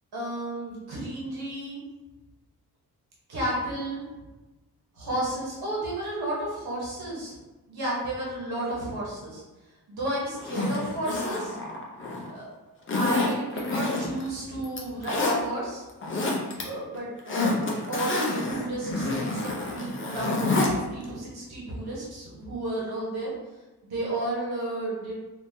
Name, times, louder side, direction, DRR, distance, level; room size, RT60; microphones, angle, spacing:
voice 1, 0.1-1.8 3.3-4.1 4.9-7.3 7.7-9.4 9.9-11.6 12.3-12.5 12.9-15.8 16.4-23.3 23.8-25.1, right 1 dB, 70° right, -6 dB, 1.2 m, -32 dB
Zipper (clothing), 10.4-12.3 12.9-14.3 14.6-15.4 15.9-16.6 16.9-20.7 21.0-21.1, left 2 dB, 30° left, 0.5 m, -28 dB
3.7 x 2.7 x 2.7 m, 1.1 s
wide cardioid pair, 180°, 39 cm